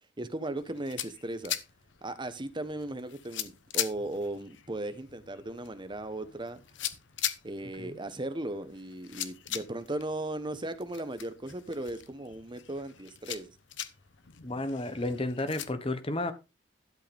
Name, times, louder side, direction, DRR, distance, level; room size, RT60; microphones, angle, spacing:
voice 1, 0.2-1.6 2.0-6.6 7.4-13.5, right 1 dB, 25° right, 1.1 m, -37 dB
sound 1, 0.6-15.7, left 12 dB, 70° left, 0.9 m, -41 dB
voice 2, 14.4-16.3, left 2 dB, 30° left, 1.3 m, -32 dB
12.0 x 7.8 x 3.5 m
head